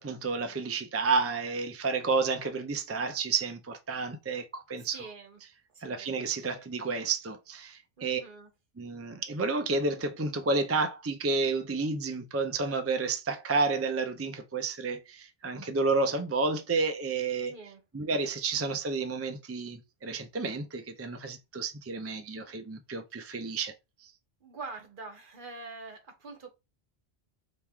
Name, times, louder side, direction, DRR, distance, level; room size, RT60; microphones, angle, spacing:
voice 1, 0.0-5.0 5.8-8.2 8.8-17.5 17.9-23.7 24.0-24.1, right 4 dB, 20° right, 0.4 m, -30 dB
voice 2, 4.8-5.4 5.7-6.1 8.0-8.5 17.5-17.8 24.4-26.5, right 4 dB, 55° right, 1.1 m, -44 dB
4.5 x 3.0 x 3.6 m
omnidirectional pair, 1.1 m